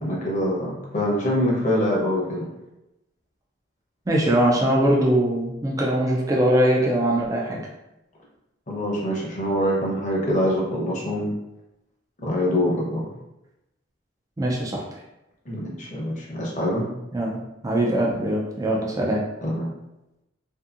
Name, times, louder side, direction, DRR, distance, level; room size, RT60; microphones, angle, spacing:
voice 1, 0.0-2.5 8.7-11.3 12.2-13.0 15.5-16.8 19.4-19.7, equal, 40° left, -3 dB, 0.7 m, -24 dB
voice 2, 4.1-7.6 14.4-14.8 17.1-19.2, right 1 dB, 20° right, -3 dB, 0.4 m, -22 dB
2.7 x 2.5 x 2.4 m, 0.93 s
head